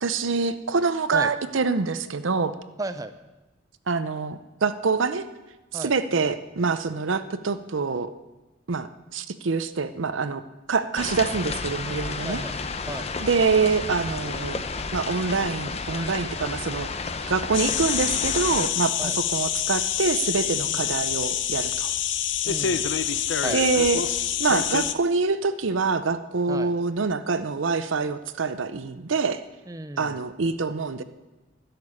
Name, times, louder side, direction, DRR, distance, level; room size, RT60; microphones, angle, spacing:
voice 1, 0.0-2.5 3.9-5.3 5.7-8.1 8.7-10.4 10.7-12.4 13.2-14.6 14.9-16.9 17.3-21.9 23.5-24.0 24.4-29.4 30.0-31.0, right 4 dB, 85° right, 11 dB, 0.7 m, -25 dB
voice 2, 2.8-3.1 5.7-5.9 12.2-12.6 12.9-13.1 19.0-19.2 20.6-20.9 22.4-22.9 23.4-23.6 26.5-26.7 29.7-30.2, right 2 dB, 20° right, 10 dB, 0.6 m, -34 dB
sound 1, 11.0-18.7, left 4 dB, 35° left, 0.7 m, -32 dB
sound 2, 17.5-24.9, left 9 dB, 70° left, 0.7 m, -26 dB
12.0 x 6.8 x 9.9 m, 1.1 s
head